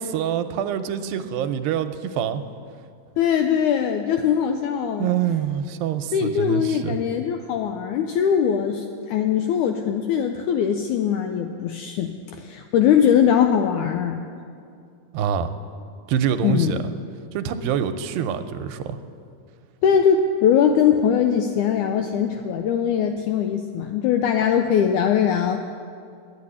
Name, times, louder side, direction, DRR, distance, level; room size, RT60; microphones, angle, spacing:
voice 1, 0.0-2.4 5.0-7.0 15.1-15.6 16.1-16.8 17.3-19.0, right 8 dB, 90° right, 9 dB, 2.4 m, -25 dB
voice 2, 3.2-5.1 6.1-14.2 16.4-16.8 19.8-25.6, left 8 dB, 85° left, 6 dB, 1.7 m, -21 dB
11.0 x 8.3 x 9.7 m, 2.4 s
omnidirectional pair, 4.1 m